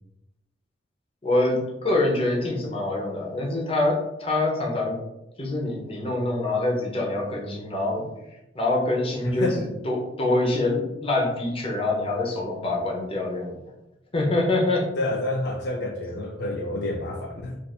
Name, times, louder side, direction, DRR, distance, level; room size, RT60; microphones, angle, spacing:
voice 1, 1.2-5.0 5.4-8.1 8.5-13.6 14.1-14.8, left 2 dB, 30° left, -2 dB, 0.7 m, -25 dB
voice 2, 9.2-9.7 15.0-17.6, left 1 dB, 60° left, 1 dB, 0.4 m, -28 dB
2.5 x 2.5 x 4.1 m, 0.95 s
head